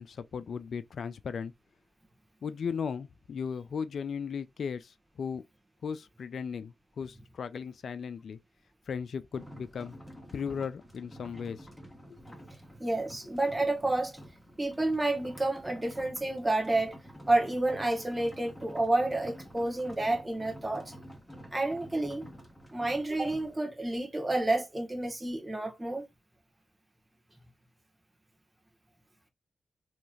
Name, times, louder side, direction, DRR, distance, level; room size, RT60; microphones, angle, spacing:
voice 1, 0.0-1.5 2.4-5.4 5.8-8.4 8.9-10.0 10.3-11.7 12.1-12.2, left 6 dB, 70° left, 0.3 m, -36 dB
sound 1, 9.3-23.6, equal, 5° left, 1.3 m, -49 dB
voice 2, 12.8-14.2 14.6-17.0 17.3-20.9 21.5-22.3 22.7-26.0, right 2 dB, 20° right, 1.4 m, -30 dB
3.1 x 3.0 x 2.5 m
supercardioid pair, 40°, 0 cm